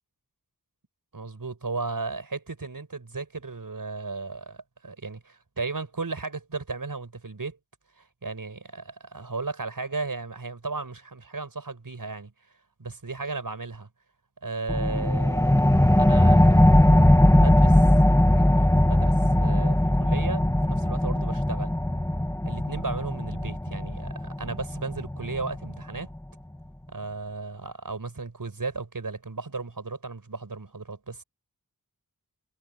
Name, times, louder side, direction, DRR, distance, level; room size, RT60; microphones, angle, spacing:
voice 1, 1.1-7.6 7.9-12.3 12.8-13.9 14.4-15.5 15.9-16.6 17.3-17.9 18.3-21.7 22.4-26.1 26.9-31.2, right 3 dB, 75° right, 6.7 m, -35 dB
sound 1, 14.7-25.8, left 1 dB, 10° left, 1.2 m, -20 dB
wide cardioid pair, 45°, 34 cm